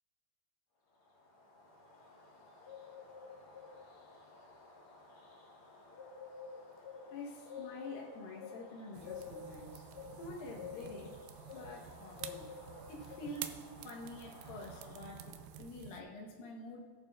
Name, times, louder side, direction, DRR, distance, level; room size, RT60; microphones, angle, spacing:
Bird, 1.0-15.7, left 5 dB, 55° left, 1.7 m, -51 dB
voice 1, 7.1-9.8 10.2-11.1 11.5-12.5 12.9-16.8, left 2 dB, 75° left, -1 dB, 2.8 m, -47 dB
sound 1, 8.9-16.0, right 11 dB, 85° right, 2.4 m, -50 dB
19.0 x 6.7 x 2.4 m, 1.5 s
omnidirectional pair, 4.3 m